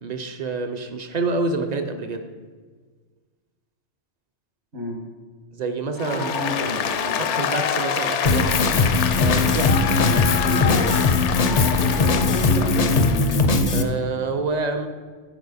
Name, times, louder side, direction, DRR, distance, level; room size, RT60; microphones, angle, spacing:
voice 1, 0.0-2.3 5.5-6.3 7.2-8.5 9.1-9.9 13.7-14.9, right 3 dB, 50° right, 7 dB, 0.5 m, -27 dB
Applause, 6.0-13.5, left 8 dB, 75° left, 0.9 m, -26 dB
voice 2, 6.1-7.4 8.3-8.7 10.1-10.8 11.4-13.1, equal, 70° right, -2 dB, 2.2 m, -31 dB
Drum kit, 8.2-13.8, left 3 dB, 55° left, 0.4 m, -20 dB
10.5 x 4.6 x 4.1 m, 1.5 s
omnidirectional pair, 1.2 m